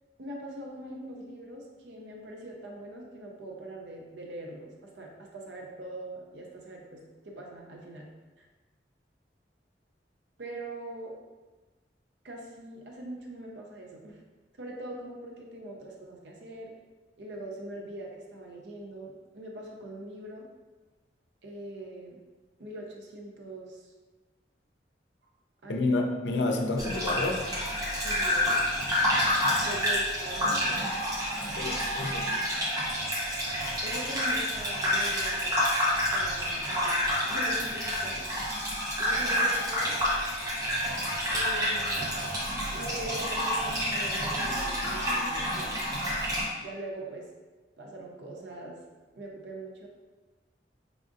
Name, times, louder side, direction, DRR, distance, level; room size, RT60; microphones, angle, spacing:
voice 1, 0.2-8.1 10.4-11.1 12.2-14.2 14.6-16.7 17.2-20.5 21.4-22.2 22.6-23.9 25.6-26.0 28.0-28.6 29.6-30.9 33.8-35.6 36.0-37.0 37.2-38.5 39.0-40.0 41.3-42.2 42.7-45.8 46.6-47.3 47.8-48.8 49.1-49.9, right 1 dB, 75° right, -1 dB, 0.5 m, -42 dB
voice 2, 25.7-27.5 31.5-32.4, left 2 dB, 80° left, 3 dB, 0.4 m, -29 dB
Gurgling / Bathtub (filling or washing), 26.8-46.4, equal, 20° right, 0.7 m, -28 dB
4.8 x 2.4 x 2.5 m, 1.3 s
head